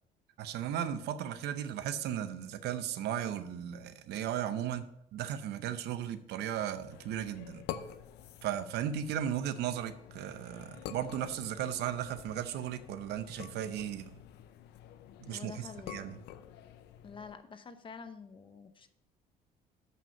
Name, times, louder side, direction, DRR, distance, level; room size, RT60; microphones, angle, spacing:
voice 1, 0.4-4.8 5.1-7.6 8.4-14.2 15.2-16.2, right 10 dB, 75° right, 11 dB, 0.7 m, -36 dB
sound 1, 6.9-17.4, left 10 dB, 80° left, 0.6 m, -48 dB
voice 2, 15.2-16.1 17.0-18.9, left 5 dB, 30° left, 10 dB, 0.7 m, -48 dB
7.3 x 5.6 x 5.2 m, 0.78 s
cardioid pair, 110°, 17 cm